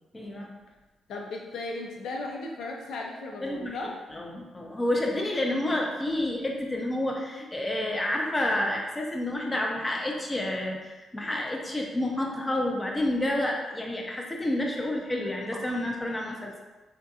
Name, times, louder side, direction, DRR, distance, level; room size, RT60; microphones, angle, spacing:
voice 1, 0.1-0.5 3.4-3.8 4.1-16.6, left 1 dB, 20° left, 0 dB, 0.5 m, -29 dB
voice 2, 1.1-4.0, left 2 dB, 80° left, 0 dB, 0.5 m, -36 dB
3.5 x 2.7 x 2.4 m, 1.2 s
cardioid pair, 115°, 0 cm